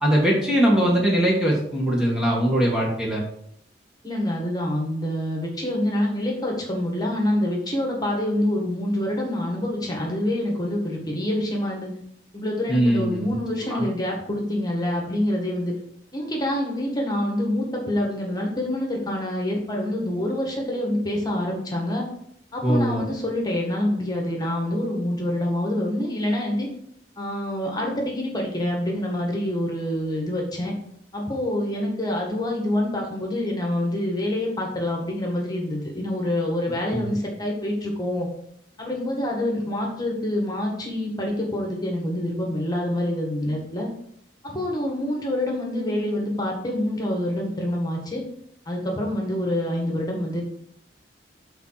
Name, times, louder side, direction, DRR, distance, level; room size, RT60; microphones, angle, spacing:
voice 1, 0.0-3.2 12.7-13.3 13.7-13.8 22.6-23.0 36.9-37.2, right 1 dB, 5° right, -4 dB, 1.5 m, -21 dB
voice 2, 4.0-11.9 12.3-15.7 16.1-22.0 22.5-26.7 27.2-30.7 31.1-38.3 38.8-43.9 44.4-48.2 48.7-50.4, left 1 dB, 20° left, 0 dB, 1.7 m, -26 dB
7.4 x 4.3 x 5.8 m, 0.69 s
head